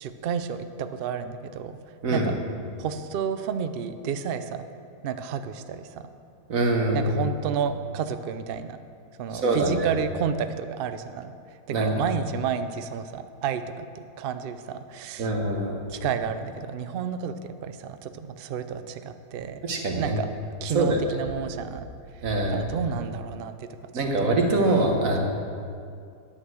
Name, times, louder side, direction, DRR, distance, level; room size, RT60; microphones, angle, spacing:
voice 1, 0.0-1.8 2.1-2.4 2.8-4.6 5.0-6.1 6.9-8.8 9.2-11.3 11.7-15.3 15.9-19.6 20.0-20.3 20.6-21.9 22.5-23.9 24.2-24.4 24.9-25.2, right 7 dB, 80° right, 10 dB, 0.5 m, -31 dB
voice 2, 6.5-7.2 9.4-9.9 11.7-11.9 15.2-15.8 19.6-20.2 20.7-21.0 22.2-22.6 23.9-25.2, right 2 dB, 60° right, 2 dB, 1.7 m, -24 dB
9.9 x 8.6 x 6.3 m, 2.4 s
omnidirectional pair, 1.6 m